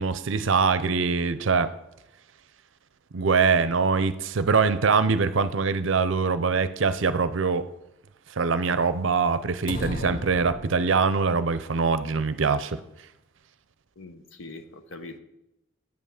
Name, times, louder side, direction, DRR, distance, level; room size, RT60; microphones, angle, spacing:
voice 1, 0.0-1.7 3.1-7.7 8.4-12.8, right 5 dB, 65° right, 13 dB, 0.6 m, -23 dB
sound 1, 9.7-11.3, left 1 dB, 45° left, 0.6 m, -35 dB
voice 2, 14.0-15.2, left 2 dB, 70° left, 8 dB, 0.9 m, -42 dB
9.0 x 5.7 x 6.5 m, 0.86 s
head